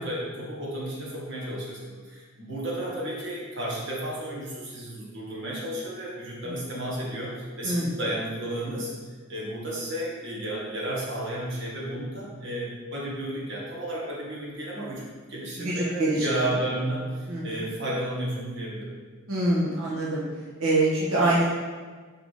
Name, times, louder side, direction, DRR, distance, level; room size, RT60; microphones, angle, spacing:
voice 1, 0.0-8.9 9.3-18.9, right 1 dB, 55° right, -5 dB, 1.4 m, -32 dB
voice 2, 15.6-16.2 16.5-16.6 17.3-17.6 19.3-20.2 20.6-21.5, right 2 dB, 80° right, -6 dB, 1.2 m, -25 dB
4.9 x 4.7 x 4.0 m, 1.4 s
head